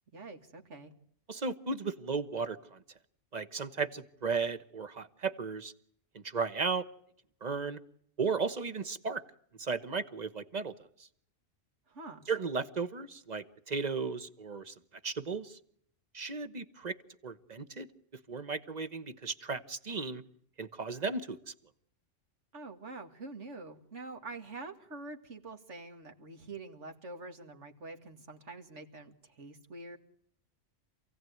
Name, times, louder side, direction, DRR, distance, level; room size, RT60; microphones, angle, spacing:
voice 1, 0.1-0.9 11.9-12.3 22.5-30.0, right 3 dB, 65° right, 4 dB, 2.4 m, -46 dB
voice 2, 1.3-2.8 3.3-5.7 6.2-6.8 7.4-7.8 8.2-9.2 9.6-10.7 12.3-14.7 15.0-15.6 16.1-17.0 17.2-17.9 18.3-20.2 20.6-21.5, right 4 dB, 35° right, 12 dB, 1.2 m, -35 dB
27.5 x 17.0 x 9.4 m, 0.67 s
omnidirectional pair, 1.3 m